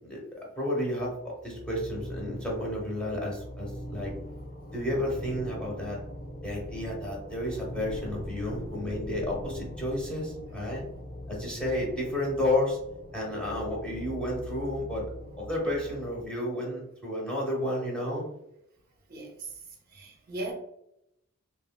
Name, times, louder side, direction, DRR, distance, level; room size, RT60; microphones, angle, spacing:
voice 1, 0.0-4.1 4.7-6.0 6.4-10.8 11.3-12.8 13.1-15.1 15.4-18.2, left 1 dB, 5° left, -4 dB, 0.9 m, -31 dB
sound 1, 0.9-16.3, left 1 dB, 50° left, 1.2 m, -41 dB
voice 2, 19.1-19.5 19.9-20.5, right 2 dB, 45° right, 0 dB, 0.6 m, -38 dB
3.0 x 2.8 x 2.2 m, 0.79 s
head